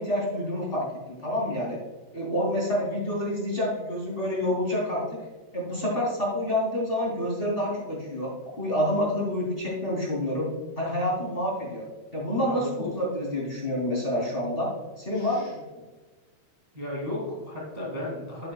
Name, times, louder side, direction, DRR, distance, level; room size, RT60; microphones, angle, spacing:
voice 1, 0.0-1.8 2.1-5.0 5.5-8.3 8.6-10.5 10.8-11.9 12.1-14.7 15.0-15.5, left 1 dB, 15° left, -5 dB, 2.8 m, -28 dB
voice 2, 12.5-12.9 15.1-15.5 16.7-18.5, left 1 dB, 15° right, -5 dB, 1.9 m, -35 dB
12.5 x 9.5 x 2.3 m, 1.2 s
omnidirectional pair, 3.9 m